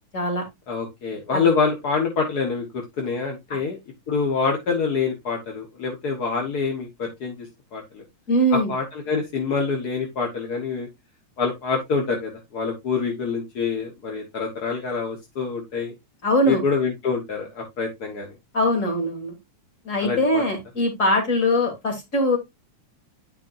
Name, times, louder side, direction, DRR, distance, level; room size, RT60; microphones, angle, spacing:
voice 1, 0.1-0.4 1.3-1.4 8.3-8.7 16.2-16.6 18.5-19.3 19.8-22.4, left 1 dB, 25° left, 1 dB, 3.2 m, -21 dB
voice 2, 0.7-3.8 4.1-7.5 7.7-8.0 8.5-10.9 11.4-15.9 16.4-18.3 20.0-20.4, left 5 dB, 45° left, 2 dB, 1.4 m, -26 dB
10.0 x 5.8 x 2.6 m, 0.19 s
omnidirectional pair, 3.3 m